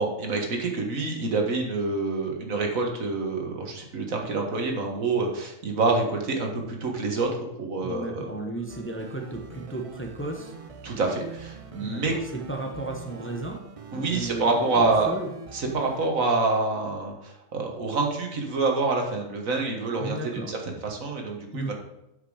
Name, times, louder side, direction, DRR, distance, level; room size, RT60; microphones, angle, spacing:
voice 1, 0.0-7.3 7.6-8.2 10.8-12.1 13.9-15.1 15.5-21.7, right 3 dB, 80° right, 2 dB, 1.9 m, -27 dB
voice 2, 7.8-10.5 11.8-13.6 13.9-15.3 20.0-20.5 21.5-21.7, right 2 dB, 10° left, 2 dB, 0.9 m, -34 dB
sound 1, 8.7-16.1, right 4 dB, 40° right, 0.5 m, -43 dB
8.6 x 5.9 x 4.9 m, 0.86 s
omnidirectional pair, 1.4 m